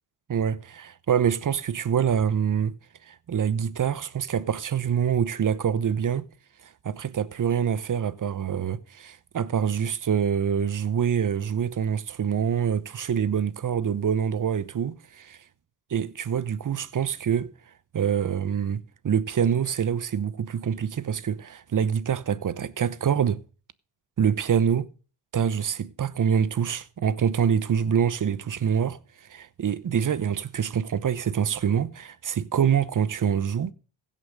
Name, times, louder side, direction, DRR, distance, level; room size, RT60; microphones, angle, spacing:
voice 1, 0.3-2.7 3.1-6.3 6.8-14.9 15.9-17.5 17.9-23.4 24.2-24.9 25.3-29.0 29.3-33.7, right 8 dB, 40° right, 0.9 m, -25 dB
16.0 x 5.6 x 6.5 m
supercardioid pair, 55°, 49 cm